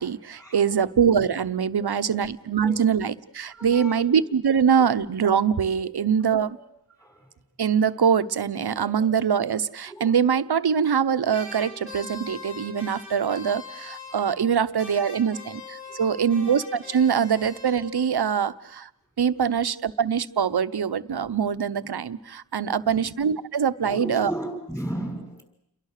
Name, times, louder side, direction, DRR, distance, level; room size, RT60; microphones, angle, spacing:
voice 1, 0.0-6.6 7.6-18.9 19.2-24.3, right 7 dB, 85° right, 12 dB, 0.8 m, -23 dB
voice 2, 1.7-2.2 2.6-2.9 3.5-4.1 5.8-6.0 6.2-6.6 7.0-7.3 8.7-9.1 9.4-9.6 9.9-10.2 14.1-14.2 15.8-16.0 22.6-23.0 23.8-25.4, right 1 dB, 10° left, 4 dB, 6.0 m, -37 dB
sound 1, 11.3-14.5 14.8-18.2, left 3 dB, 35° left, 7.8 m, -42 dB
29.0 x 23.0 x 6.6 m, 0.81 s
wide cardioid pair, 75°, 38 cm